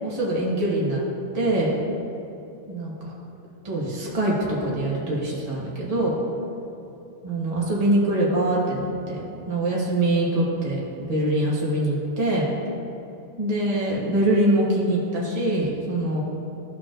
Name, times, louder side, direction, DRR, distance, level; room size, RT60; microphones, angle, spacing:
voice 1, 0.0-1.0 1.3-1.7 2.7-3.1 3.6-6.1 7.2-9.2 9.5-10.8 11.1-12.4 13.4-16.2, right 1 dB, 30° right, -5 dB, 1.3 m, -23 dB
13.5 x 4.7 x 2.5 m, 2.9 s
omnidirectional pair, 1.2 m